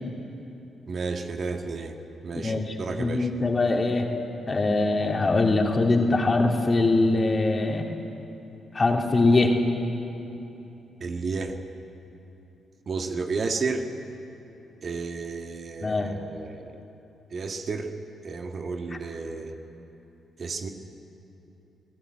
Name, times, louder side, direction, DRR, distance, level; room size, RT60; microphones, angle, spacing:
voice 1, 0.9-2.0 2.2-3.3 11.0-11.6 12.9-13.9 14.8-16.8 17.3-17.9 18.2-19.6 20.4-20.7, right 4 dB, 50° right, 4 dB, 1.9 m, -32 dB
voice 2, 2.4-4.1 4.5-7.9 8.7-9.5 15.8-16.1, left 2 dB, 35° left, 1 dB, 3.2 m, -22 dB
21.5 x 17.5 x 8.9 m, 3.0 s
hypercardioid pair, 40°, 0 cm